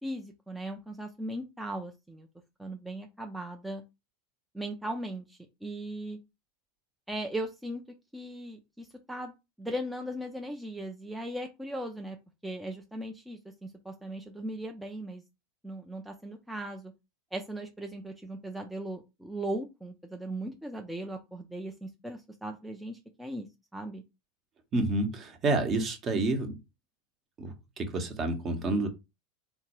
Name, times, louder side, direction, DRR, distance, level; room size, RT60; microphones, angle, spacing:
voice 1, 0.0-2.3 2.6-3.8 4.5-6.2 7.1-7.8 8.1-9.3 9.6-12.2 12.4-15.2 15.6-16.9 17.3-23.5 23.7-24.0, right 1 dB, 5° right, 0.4 m, -38 dB
voice 2, 24.7-26.5 27.4-28.9, right 2 dB, 35° right, 0.9 m, -29 dB
3.6 x 2.2 x 3.0 m
figure-of-eight pair, 85°, 0 cm